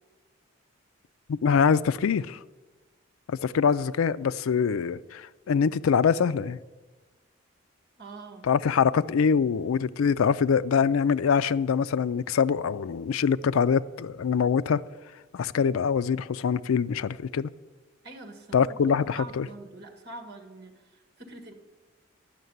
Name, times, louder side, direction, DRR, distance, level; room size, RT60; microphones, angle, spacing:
voice 1, 1.3-2.4 3.3-6.6 8.4-14.8 15.3-17.5 18.5-19.5, left 6 dB, 80° left, 0.4 m, -24 dB
voice 2, 8.0-8.5 18.0-21.5, right 2 dB, 50° right, 1.8 m, -44 dB
11.0 x 6.5 x 9.3 m
head